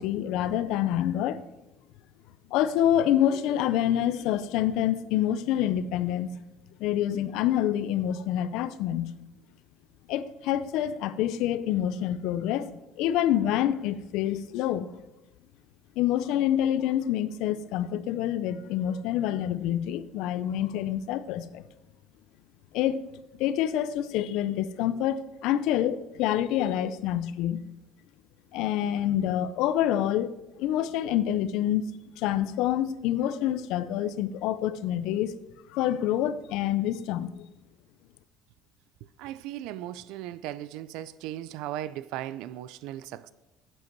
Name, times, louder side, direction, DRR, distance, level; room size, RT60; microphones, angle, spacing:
voice 1, 0.0-1.4 2.5-6.3 6.8-9.1 10.1-14.9 16.0-21.6 22.7-23.0 23.4-27.6 28.5-31.8 32.2-35.3 35.7-37.3, left 11 dB, 70° left, 0.5 m, -27 dB
voice 2, 39.2-43.3, right 13 dB, 75° right, 0.3 m, -37 dB
8.6 x 7.7 x 4.5 m
cardioid pair, 150°, 0 cm